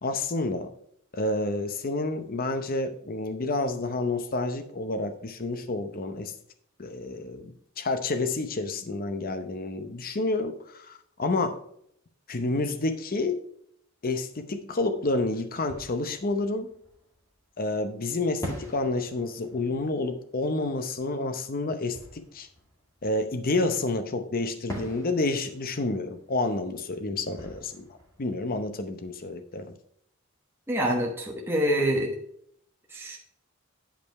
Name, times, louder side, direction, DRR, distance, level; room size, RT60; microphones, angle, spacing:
voice 1, 0.0-0.7 1.1-6.3 6.8-11.6 12.3-13.4 14.0-16.7 17.6-22.5 23.0-29.7, left 2 dB, 45° left, 8 dB, 0.7 m, -29 dB
Fireworks, 15.6-17.6 18.4-23.8 24.7-29.4, equal, 15° left, 2.1 m, -45 dB
voice 2, 30.7-32.2 32.9-33.2, equal, 10° right, -1 dB, 1.1 m, -26 dB
9.1 x 5.4 x 4.6 m, 0.69 s
head